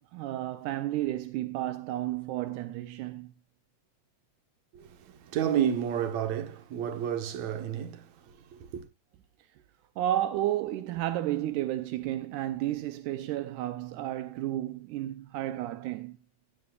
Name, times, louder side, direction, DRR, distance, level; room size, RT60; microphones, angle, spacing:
voice 1, 0.1-3.3 10.0-16.2, right 13 dB, 85° right, 2.2 m, -32 dB
voice 2, 4.7-8.8, right 9 dB, 70° right, 2.4 m, -31 dB
16.0 x 10.0 x 2.4 m
omnidirectional pair, 3.5 m